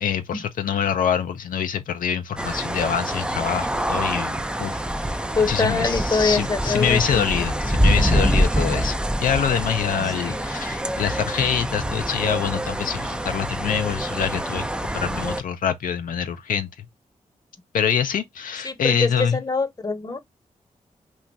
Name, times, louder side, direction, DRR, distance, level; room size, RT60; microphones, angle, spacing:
voice 1, 0.0-5.1 5.5-14.7 14.9-16.9 17.7-19.4, left 8 dB, 80° left, 0.4 m, -25 dB
sound 1, 2.4-15.4, right 1 dB, 5° right, 0.4 m, -25 dB
voice 2, 5.4-7.5 10.0-10.4 18.6-20.2, left 4 dB, 25° left, 0.7 m, -24 dB
2.4 x 2.2 x 3.9 m
cardioid pair, 50°, 14 cm